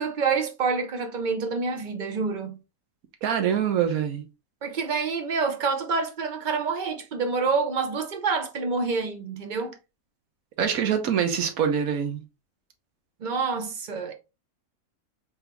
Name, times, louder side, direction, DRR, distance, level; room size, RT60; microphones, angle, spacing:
voice 1, 0.0-2.6 4.6-9.8 13.2-14.1, right 4 dB, 55° right, 0.5 m, -27 dB
voice 2, 3.2-4.2 10.6-12.2, right 8 dB, 70° right, 1.3 m, -24 dB
3.8 x 3.5 x 3.0 m
omnidirectional pair, 1.6 m